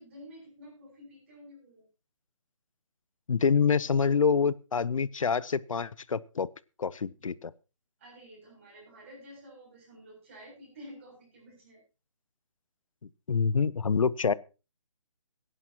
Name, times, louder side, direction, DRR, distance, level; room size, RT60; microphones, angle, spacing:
voice 1, 0.0-1.8 8.0-11.8, equal, 25° right, 7.2 m, -50 dB
voice 2, 3.3-6.5 6.8-7.5 13.3-14.3, left 5 dB, 80° left, 0.7 m, -26 dB
21.0 x 11.0 x 2.9 m
hypercardioid pair, 175°, 17 cm